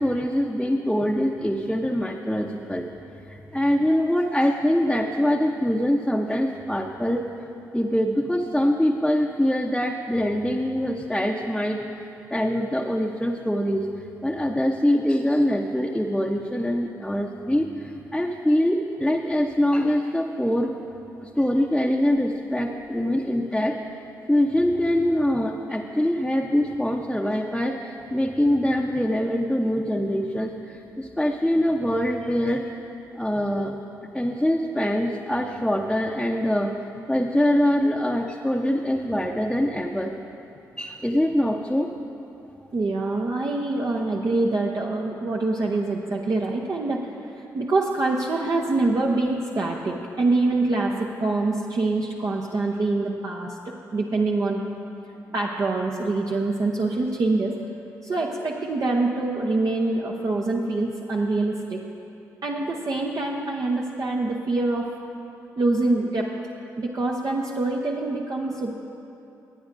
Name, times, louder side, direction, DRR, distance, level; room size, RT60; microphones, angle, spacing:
voice 1, 0.0-2.9 3.3-7.3 7.7-11.8 12.3-20.7 21.2-23.8 24.3-32.7 33.1-33.8 34.1-36.7 37.1-40.1 40.8-41.9, equal, 5° left, -1 dB, 0.8 m, -24 dB
voice 2, 42.7-47.1 47.5-54.6 55.3-57.6 58.0-61.8 62.4-64.9 65.6-66.3 66.8-68.7, right 2 dB, 45° right, -1 dB, 0.9 m, -25 dB
25.0 x 8.9 x 2.6 m, 2.9 s
hypercardioid pair, 45°, 9 cm